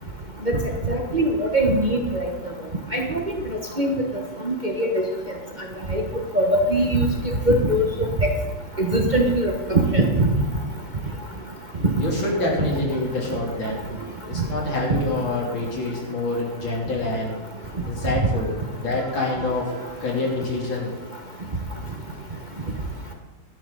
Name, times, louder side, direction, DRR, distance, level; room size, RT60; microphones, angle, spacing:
voice 1, 0.9-2.0 2.9-3.2 3.8-3.9 4.4-4.9 5.9-6.0 6.3-7.0 7.5-7.8 8.8-10.3, right 1 dB, 25° right, 1 dB, 1.3 m, -20 dB
voice 2, 11.9-13.9 14.3-17.4 17.8-21.3, left 2 dB, 80° left, -3 dB, 4.2 m, -26 dB
17.5 x 11.5 x 4.0 m, 1.2 s
omnidirectional pair, 2.1 m